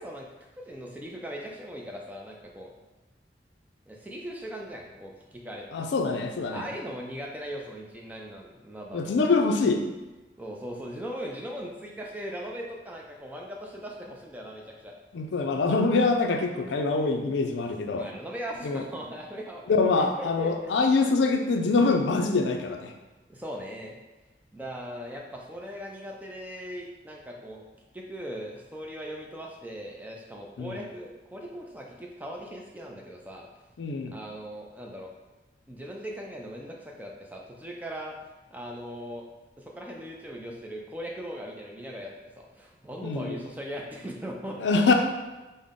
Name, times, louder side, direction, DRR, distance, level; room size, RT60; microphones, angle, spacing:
voice 1, 0.0-2.7 3.9-5.7 6.5-9.4 10.4-14.9 18.0-19.7 19.9-20.7 23.3-23.9 24.5-27.6 27.9-33.5 34.1-35.1 35.7-38.2 38.5-39.3 39.6-44.6, equal, 10° right, -1 dB, 0.3 m, -39 dB
voice 2, 5.7-6.7 8.9-9.8 15.1-18.1 18.6-18.8 19.7-22.9 30.6-30.8 33.8-34.1 43.0-43.4 44.6-44.9, left 3 dB, 80° left, 4 dB, 0.4 m, -24 dB
3.6 x 2.1 x 3.6 m, 1.1 s
head